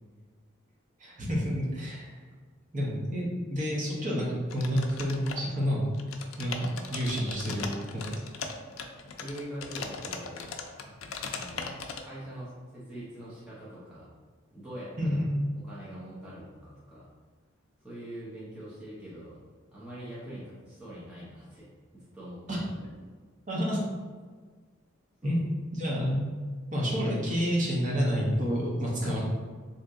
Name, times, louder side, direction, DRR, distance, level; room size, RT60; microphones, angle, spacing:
voice 1, 1.0-2.2 2.7-5.8 6.4-8.1 15.0-15.2 22.5-22.6 23.5-23.8 25.2-25.4 25.7-26.3 26.7-29.2, equal, 35° right, -5 dB, 0.8 m, -29 dB
sound 1, 4.5-5.7 5.9-12.0, left 5 dB, 85° left, 0.4 m, -39 dB
voice 2, 9.1-10.5 11.3-14.1 14.5-15.3 15.6-17.1 17.8-19.4 19.7-21.7 21.9-22.6 25.2-25.4, right 1 dB, 5° right, -10 dB, 0.6 m, -43 dB
2.8 x 2.6 x 3.5 m, 1.5 s
head